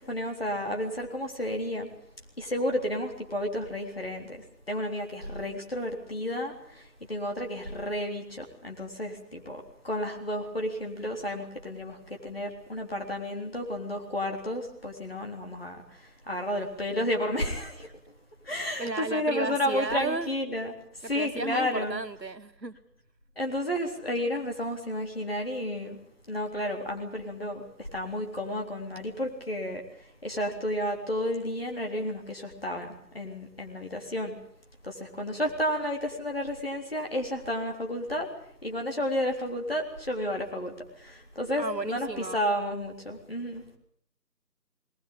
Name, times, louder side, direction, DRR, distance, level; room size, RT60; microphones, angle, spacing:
voice 1, 0.1-1.9 2.4-17.9 18.4-20.7 21.0-22.0 23.4-26.0 26.3-29.8 30.2-34.3 34.8-38.3 38.6-43.6, left 1 dB, 35° left, 2 dB, 3.6 m, -32 dB
voice 2, 18.8-20.3 21.1-22.8 41.6-42.4, right 3 dB, 80° right, 9 dB, 2.0 m, -33 dB
20.0 x 20.0 x 8.6 m, 0.65 s
figure-of-eight pair, 175°, 50 cm